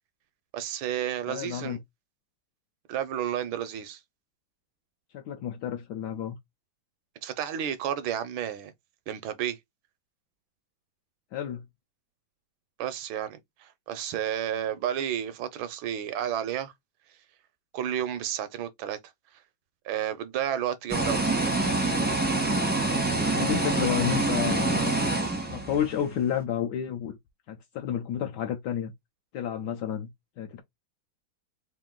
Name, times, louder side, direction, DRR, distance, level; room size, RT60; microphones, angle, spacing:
voice 1, 0.5-1.8 2.9-4.0 7.2-8.7 9.1-9.6 12.8-16.7 17.7-19.0 19.8-21.6, right 10 dB, 80° right, 1.4 m, -31 dB
voice 2, 1.3-1.8 5.1-6.4 11.3-11.6 23.3-25.1 25.5-27.2 27.5-28.9 29.3-30.1 30.4-30.6, left 9 dB, 75° left, 1.0 m, -31 dB
sound 1, 20.9-26.1, right 2 dB, 10° right, 0.4 m, -26 dB
3.7 x 2.6 x 3.6 m
omnidirectional pair, 2.2 m